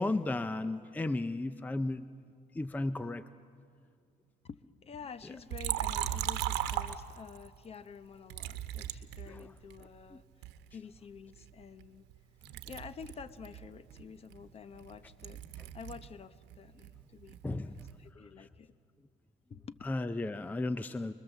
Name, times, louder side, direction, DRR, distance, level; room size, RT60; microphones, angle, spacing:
voice 1, 0.0-2.1 2.5-3.2 9.3-9.5 17.4-17.8 19.8-21.1, left 2 dB, 10° left, 12 dB, 0.5 m, -34 dB
voice 2, 4.4-10.2 10.7-12.0 12.7-15.4 15.7-18.7 19.5-19.8, left 6 dB, 35° left, 13 dB, 0.8 m, -49 dB
Liquid, 5.5-7.5 8.3-9.8 10.4-12.2 12.4-16.1 16.4-18.0, right 12 dB, 90° right, 1.0 m, -38 dB
25.0 x 21.5 x 7.3 m, 2.3 s
cardioid pair, 110°, 17 cm